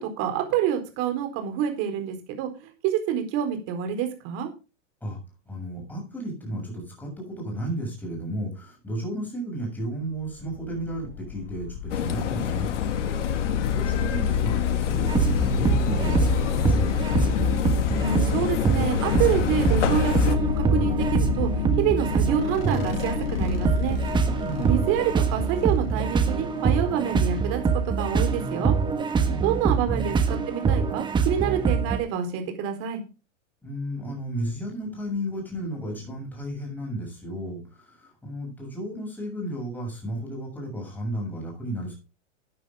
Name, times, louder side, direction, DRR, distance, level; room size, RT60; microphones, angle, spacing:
voice 1, 0.0-4.5 17.9-21.5 21.8-24.0 24.6-28.7 29.4-33.0, right 9 dB, 35° right, 6 dB, 4.2 m, -27 dB
voice 2, 5.5-12.7 13.3-17.0 24.4-24.9 29.2-30.0 33.6-41.9, right 1 dB, 5° left, 0 dB, 6.9 m, -33 dB
sound 1, 10.3-27.7, left 9 dB, 50° left, 1.2 m, -29 dB
sound 2, 11.9-20.3, left 7 dB, 70° left, 2.6 m, -29 dB
sound 3, 15.1-32.0, right 5 dB, 10° right, 1.5 m, -25 dB
14.0 x 9.6 x 3.7 m, 0.31 s
hypercardioid pair, 145°, 38 cm